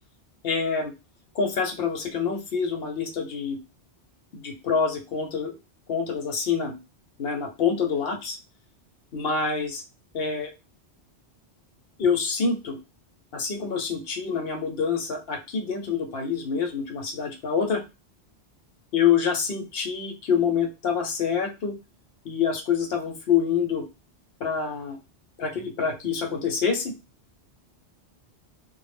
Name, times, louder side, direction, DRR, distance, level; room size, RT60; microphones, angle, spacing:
voice 1, 0.4-0.9 1.3-3.6 4.3-5.6 5.9-6.8 7.2-8.4 9.1-9.8 10.1-10.5 12.0-12.8 13.3-17.8 18.9-21.8 22.2-23.8 24.4-25.0 25.4-26.9, left 6 dB, 65° left, 4 dB, 0.8 m, -26 dB
2.1 x 2.0 x 3.2 m, 0.27 s
omnidirectional pair, 1.2 m